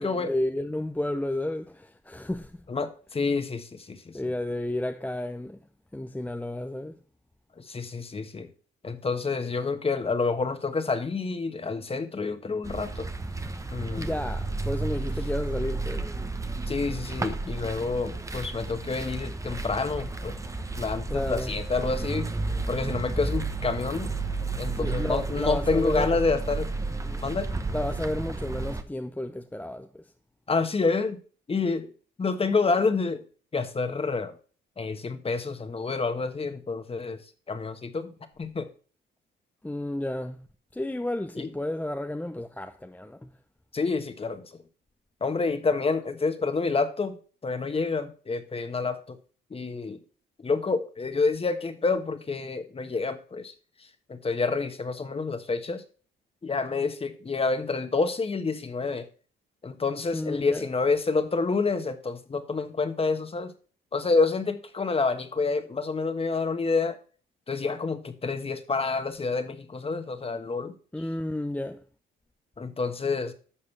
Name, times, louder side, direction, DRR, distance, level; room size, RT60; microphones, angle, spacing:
voice 1, 0.0-2.6 4.1-5.6 5.9-7.0 14.0-16.1 21.1-21.5 24.8-26.2 27.0-27.2 27.7-30.0 39.6-40.5 40.7-43.3 60.1-60.7 70.9-71.8, left 1 dB, 10° left, 0.7 m, -32 dB
voice 2, 2.7-4.2 7.6-8.5 8.8-13.1 13.7-14.1 16.7-20.4 20.8-22.3 22.7-24.1 24.6-26.7 27.2-27.5 30.5-31.2 31.5-31.9 32.2-33.2 33.5-34.3 34.8-37.2 37.5-38.1 38.4-38.7 41.3-41.5 43.7-44.6 45.2-47.2 47.4-49.2 49.5-50.0 50.4-53.5 54.1-55.8 56.4-59.0 59.6-63.5 63.9-67.0 67.5-70.7 72.6-73.3, left 4 dB, 30° left, 1.5 m, -28 dB
sound 1, 12.6-28.8, right 3 dB, 15° right, 1.0 m, -32 dB
11.5 x 6.6 x 3.3 m
cardioid pair, 90°, 20 cm